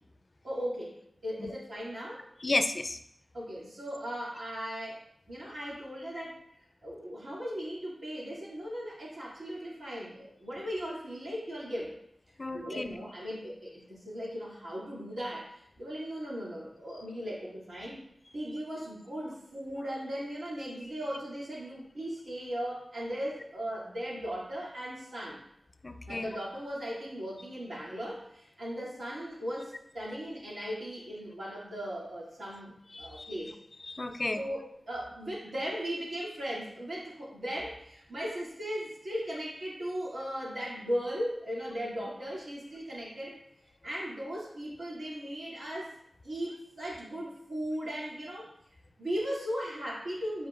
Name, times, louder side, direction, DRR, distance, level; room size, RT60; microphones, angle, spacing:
voice 1, 0.4-0.9 1.2-2.3 3.3-6.4 6.8-11.9 12.5-18.0 18.3-25.4 26.1-33.6 34.3-43.4 43.8-46.0 46.2-48.5 49.0-50.5, equal, 85° right, -6 dB, 2.4 m, -37 dB
voice 2, 2.4-3.0 12.4-13.0 25.8-26.3 33.0-33.3 33.9-34.4, left 2 dB, 40° left, 9 dB, 0.4 m, -32 dB
8.6 x 5.0 x 2.4 m, 0.76 s
wide cardioid pair, 90°, 0 cm